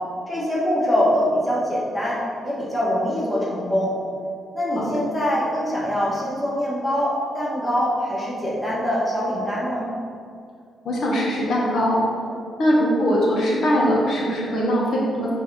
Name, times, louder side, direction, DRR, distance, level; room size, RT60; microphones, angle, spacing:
voice 1, 0.3-2.2 2.4-4.0 4.5-9.9, equal, 5° left, -7 dB, 1.5 m, -23 dB
voice 2, 10.8-12.0 12.6-15.3, equal, 55° left, -4 dB, 1.1 m, -21 dB
7.5 x 3.6 x 4.9 m, 2.3 s
cardioid pair, 165°, 0 cm